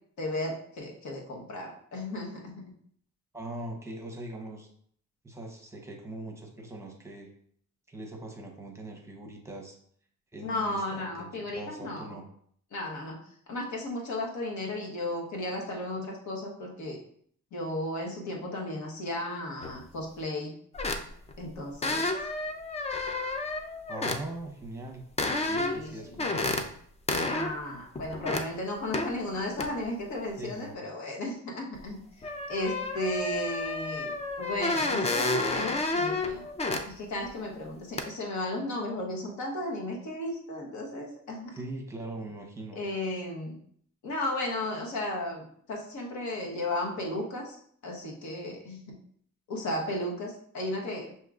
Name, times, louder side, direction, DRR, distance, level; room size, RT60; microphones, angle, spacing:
voice 1, 0.2-2.7 10.4-12.2 12.7-13.2 13.5-17.0 17.5-20.5 21.4-22.1 25.4-26.2 27.3-32.0 32.5-36.4 36.9-41.5 42.7-43.6 44.0-47.6 47.8-48.9 49.5-51.1, left 1 dB, 70° left, -1 dB, 1.2 m, -34 dB
voice 2, 3.3-4.7 5.2-7.3 7.9-9.8 10.3-12.3 23.9-25.0 25.5-26.6 30.4-30.8 41.5-42.8, right 1 dB, 10° right, 1 dB, 0.8 m, -41 dB
sound 1, 19.6-19.8 20.7-21.3 21.8-24.2 25.2-25.9 26.2-26.7 27.1-27.5 27.9-28.4 28.9-29.1 29.6-29.7 31.8-31.9 32.2-36.8 37.3-37.4 38.0-38.1, left 2 dB, 20° left, 0.3 m, -30 dB
6.3 x 2.9 x 2.4 m, 0.62 s
cardioid pair, 125°, 30 cm